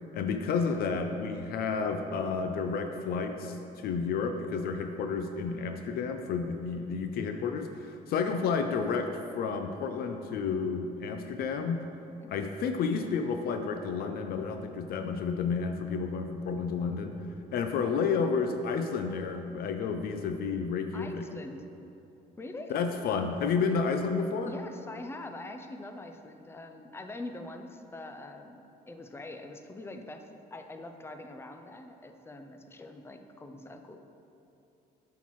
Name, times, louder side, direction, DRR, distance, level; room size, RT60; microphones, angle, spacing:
voice 1, 0.1-11.8 12.3-17.1 17.5-21.2 22.7-24.5, left 5 dB, 65° left, 6 dB, 0.5 m, -31 dB
voice 2, 20.9-21.6 22.4-22.7 24.5-30.2 30.5-34.0, left 2 dB, 15° left, 6 dB, 0.5 m, -43 dB
8.2 x 5.8 x 3.1 m, 2.7 s
cardioid pair, 110°, 17 cm